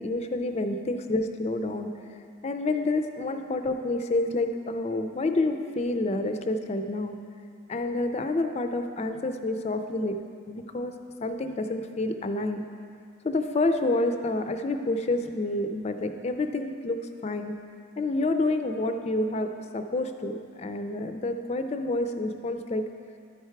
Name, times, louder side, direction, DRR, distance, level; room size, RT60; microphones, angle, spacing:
voice 1, 0.0-1.9 2.4-7.2 7.7-10.1 10.5-10.9 11.2-12.6 13.2-17.6 18.0-19.5 19.7-22.8, left 2 dB, 30° left, 7 dB, 0.4 m, -28 dB
11.5 x 4.7 x 4.5 m, 2.4 s
head